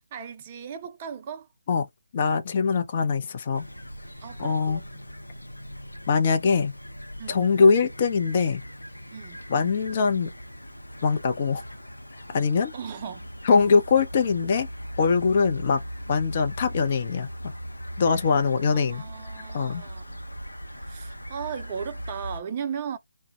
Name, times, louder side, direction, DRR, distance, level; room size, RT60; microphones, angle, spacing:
voice 1, 0.1-1.5 4.2-5.0 7.2-7.5 9.1-9.4 12.7-13.3 18.7-20.2 20.7-23.0, right 7 dB, 25° right, 0.4 m, -37 dB
voice 2, 2.1-3.7 4.4-4.8 6.1-6.7 7.3-8.6 9.5-10.3 11.0-11.6 12.3-12.7 13.4-14.7 15.0-15.8 16.1-17.5 18.0-19.0 19.5-19.8, left 5 dB, 35° left, 0.5 m, -22 dB
sound 1, 3.5-22.4, equal, 85° left, 0.6 m, -39 dB
2.1 x 2.0 x 2.8 m
figure-of-eight pair, 150°, 0 cm